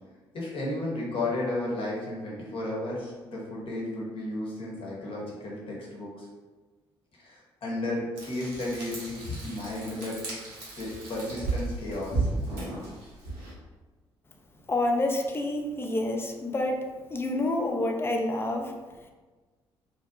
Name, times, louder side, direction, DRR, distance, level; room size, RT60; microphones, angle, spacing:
voice 1, 0.3-6.3 7.1-10.5 10.7-12.3, left 2 dB, 45° left, -4 dB, 0.9 m, -33 dB
Frying (food), 8.2-13.5, right 3 dB, 70° right, 0.6 m, -34 dB
voice 2, 14.7-18.8, left 1 dB, 20° left, 2 dB, 0.4 m, -28 dB
2.6 x 2.1 x 2.4 m, 1.3 s
figure-of-eight pair, 45°, 13 cm